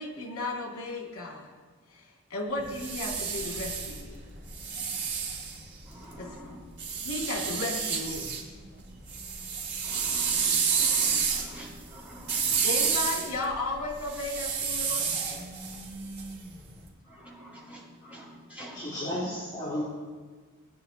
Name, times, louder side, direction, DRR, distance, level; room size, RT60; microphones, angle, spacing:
voice 1, 0.0-1.5 1.9-4.2 6.2-6.3 7.0-8.3 12.6-15.4, left 2 dB, 75° left, -1 dB, 2.5 m, -34 dB
sound 1, 2.6-6.1 6.8-8.4 8.8-16.7, right 6 dB, 55° right, 3.2 m, -30 dB
voice 2, 5.9-6.5 9.8-12.6 17.1-18.8, equal, 5° right, -7 dB, 4.3 m, -46 dB
voice 3, 18.7-19.8, left 1 dB, 20° left, -10 dB, 3.7 m, -33 dB
21.0 x 9.5 x 2.9 m, 1.5 s
head